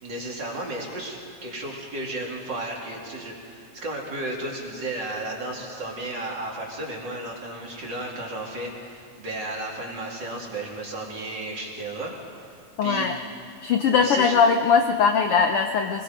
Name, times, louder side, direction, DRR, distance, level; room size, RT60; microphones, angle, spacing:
voice 1, 0.0-13.1 13.9-14.4, right 2 dB, 35° right, -2 dB, 3.2 m, -34 dB
voice 2, 12.8-13.2 13.6-16.0, left 6 dB, 80° left, 5 dB, 1.2 m, -20 dB
24.5 x 20.5 x 5.2 m, 2.5 s
omnidirectional pair, 3.6 m